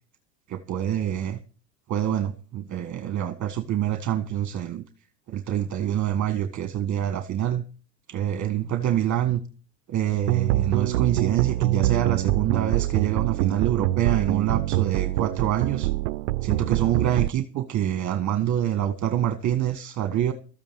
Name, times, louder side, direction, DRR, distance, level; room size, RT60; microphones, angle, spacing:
voice 1, 0.5-1.4 1.9-4.8 5.3-7.6 8.1-9.4 9.9-15.9 16.4-20.3, right 11 dB, 35° right, 1.6 m, -26 dB
sound 1, 10.3-17.3, right 16 dB, 75° right, 0.6 m, -25 dB
14.0 x 8.9 x 7.0 m
hypercardioid pair, 85°, 50 cm